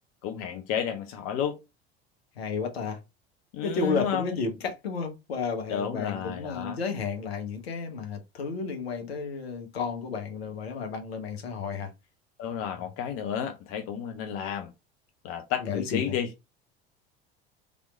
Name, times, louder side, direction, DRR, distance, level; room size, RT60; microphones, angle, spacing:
voice 1, 0.2-1.6 3.5-4.3 5.7-6.8 12.4-14.7 15.2-16.3, left 8 dB, 45° left, 0.6 m, -31 dB
voice 2, 2.4-3.0 3.6-11.9 12.7-12.8 15.6-16.2, left 5 dB, 70° left, 1.1 m, -32 dB
3.4 x 3.0 x 2.4 m
figure-of-eight pair, 70°, 32 cm